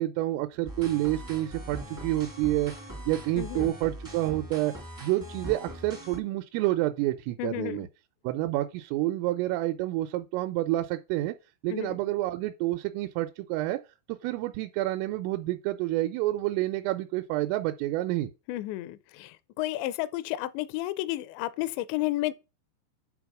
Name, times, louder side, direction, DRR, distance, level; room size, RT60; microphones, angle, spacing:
voice 1, 0.0-2.7 3.1-4.7 5.0-7.9 8.2-11.4 11.6-13.8 14.1-18.3, right 16 dB, 85° right, 3.2 m, -28 dB
sound 1, 0.6-6.2, right 1 dB, 30° right, 0.3 m, -41 dB
voice 2, 3.4-3.7 7.4-7.9 11.7-12.0 18.5-22.3, left 16 dB, 80° left, 2.6 m, -32 dB
8.9 x 4.2 x 6.0 m
omnidirectional pair, 5.7 m